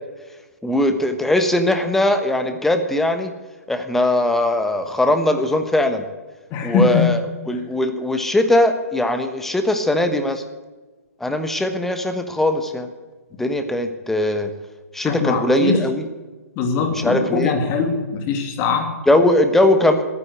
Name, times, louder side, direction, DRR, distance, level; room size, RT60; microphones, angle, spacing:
voice 1, 0.6-3.3 3.7-6.0 6.6-7.2 7.5-10.4 11.2-12.9 13.4-14.5 14.9-16.0 17.0-17.5 19.1-20.0, left 1 dB, 5° left, 7 dB, 1.2 m, -20 dB
voice 2, 6.5-7.2 7.5-7.6 15.0-15.8 16.6-19.0, left 5 dB, 30° left, 4 dB, 2.5 m, -21 dB
13.0 x 9.9 x 8.1 m, 1.3 s
figure-of-eight pair, 125°, 8 cm